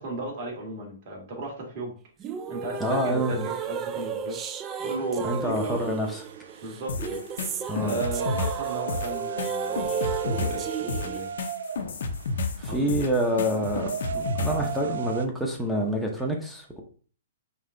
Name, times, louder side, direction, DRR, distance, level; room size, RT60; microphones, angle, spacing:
voice 1, 0.0-1.9 2.5-4.5 4.8-6.0 6.6-7.2 7.8-9.9 10.2-11.3 12.7-12.8, right 2 dB, 40° right, -2 dB, 1.9 m, -35 dB
sound 1, 2.2-11.2, right 7 dB, 20° right, 0.3 m, -34 dB
voice 2, 2.8-3.5 5.2-6.2 7.7-8.0 12.6-16.8, equal, ahead, -1 dB, 0.7 m, -27 dB
sound 2, 4.8-15.3, right 7 dB, 80° right, 0.4 m, -36 dB
sound 3, 6.9-14.7, left 3 dB, 70° left, 0.7 m, -31 dB
5.4 x 2.3 x 3.8 m, 0.42 s
hypercardioid pair, 160°, 0 cm